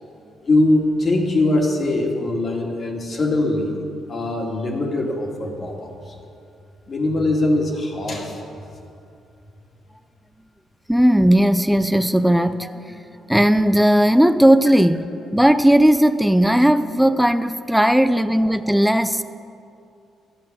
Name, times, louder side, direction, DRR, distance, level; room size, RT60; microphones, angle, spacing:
voice 1, 0.4-3.8 4.1-5.9 6.9-8.4, left 2 dB, 40° left, 1 dB, 2.1 m, -21 dB
voice 2, 10.9-13.0 13.3-15.1 15.3-19.2, equal, 5° right, 11 dB, 0.4 m, -16 dB
12.0 x 8.6 x 7.3 m, 2.6 s
cardioid pair, 90°, 0 cm